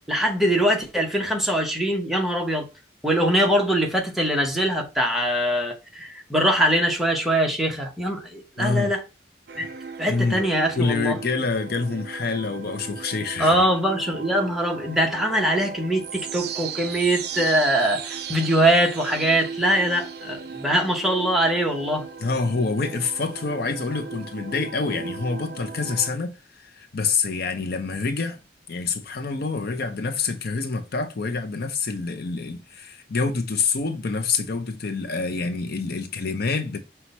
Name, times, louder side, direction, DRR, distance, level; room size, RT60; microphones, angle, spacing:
voice 1, 0.0-2.7 3.0-9.0 9.6-9.7 10.0-11.2 13.4-22.0, right 1 dB, ahead, 0.9 m, -22 dB
voice 2, 8.6-8.9 10.1-10.4 10.8-13.7 22.2-28.4 28.7-36.8, left 4 dB, 60° left, 0.6 m, -26 dB
sound 1, 9.5-26.1, right 6 dB, 65° right, 0.5 m, -36 dB
5.9 x 2.2 x 4.0 m
head